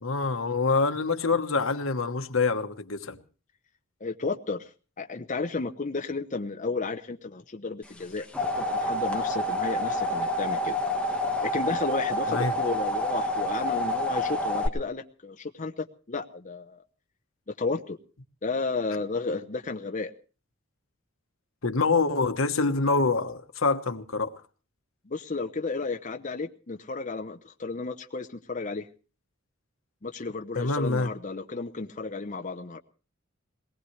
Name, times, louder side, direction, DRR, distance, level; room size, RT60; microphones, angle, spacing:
voice 1, 0.0-3.2 12.3-12.5 21.6-24.3 30.5-31.1, left 4 dB, 80° left, 1.2 m, -26 dB
voice 2, 4.0-4.7 5.0-8.3 8.6-10.8 11.4-16.8 17.5-18.0 18.4-20.1 25.1-28.9 30.0-32.8, left 3 dB, 40° left, 0.8 m, -33 dB
sound 1, 8.0-14.7, left 1 dB, 5° left, 1.3 m, -28 dB
22.0 x 19.0 x 3.2 m
head